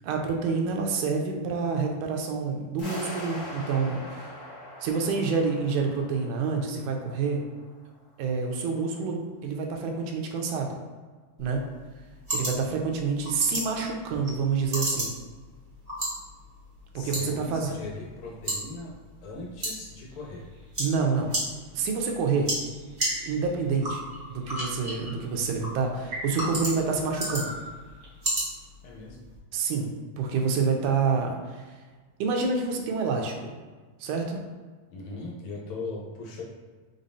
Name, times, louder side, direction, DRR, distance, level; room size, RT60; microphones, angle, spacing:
voice 1, 0.0-4.3 4.8-7.4 8.2-10.8 11.4-11.6 12.3-15.1 17.0-17.8 20.8-21.3 21.7-22.5 23.3-27.6 29.5-29.9 30.2-31.7 32.2-33.5 34.0-34.4, right 5 dB, 80° right, 2 dB, 2.0 m, -28 dB
sound 1, 2.8-7.7, left 1 dB, 55° left, 0.8 m, -42 dB
sound 2, 11.4-29.4, right 1 dB, 40° right, 0.5 m, -35 dB
voice 2, 16.9-18.9 19.2-20.4 28.8-29.3 34.9-36.4, left 3 dB, 75° left, -3 dB, 2.0 m, -39 dB
sound 3, 20.1-21.4 22.4-23.6 24.1-24.6 25.3-25.4 26.1-28.3, equal, 65° right, 0.9 m, -40 dB
5.2 x 3.6 x 2.7 m, 1.4 s
omnidirectional pair, 3.5 m